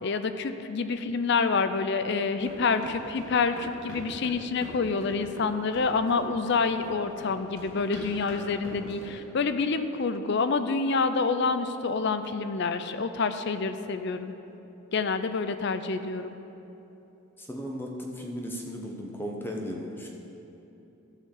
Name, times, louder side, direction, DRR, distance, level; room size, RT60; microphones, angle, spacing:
voice 1, 0.0-14.3 14.9-16.3, left 4 dB, 55° left, 10 dB, 0.5 m, -27 dB
sound 1, 2.4-9.1, equal, 80° left, 2.5 m, -43 dB
voice 2, 17.4-20.1, equal, 10° left, 0 dB, 0.8 m, -36 dB
13.0 x 4.6 x 7.1 m, 3.0 s
head